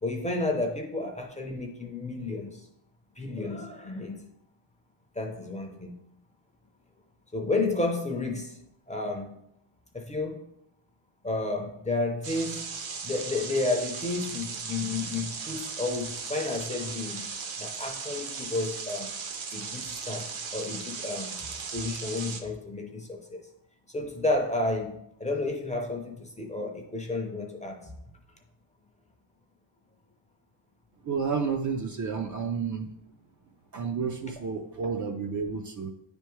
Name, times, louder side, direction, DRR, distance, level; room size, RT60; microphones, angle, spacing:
voice 1, 0.0-2.7 3.2-4.2 5.2-5.9 7.3-8.6 8.9-9.3 9.9-10.4 11.2-12.7 13.0-17.3 17.6-19.1 19.5-23.5 23.9-28.0, left 2 dB, 15° left, 2 dB, 0.5 m, -31 dB
sound 1, 12.2-22.4, right 5 dB, 65° right, 0.9 m, -37 dB
voice 2, 31.0-32.9 33.7-35.9, right 5 dB, 40° right, 4 dB, 0.4 m, -31 dB
9.5 x 3.5 x 3.1 m, 0.77 s
cardioid pair, 150°, 50 cm